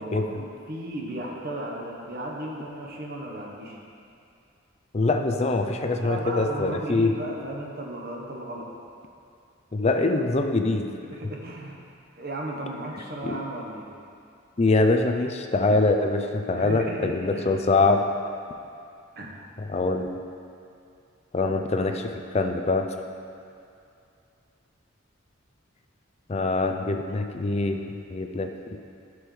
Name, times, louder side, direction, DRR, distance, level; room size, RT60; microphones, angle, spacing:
voice 1, 0.0-3.8 6.0-8.7 11.1-11.8 12.2-13.9 16.5-17.5 19.1-19.5, right 1 dB, 50° right, -1 dB, 1.1 m, -35 dB
voice 2, 4.9-7.1 9.7-10.9 13.2-13.4 14.6-18.0 19.7-20.1 21.3-22.9 26.3-27.8 28.1-28.8, left 3 dB, 30° left, 5 dB, 0.5 m, -24 dB
11.5 x 6.2 x 3.2 m, 2.5 s
head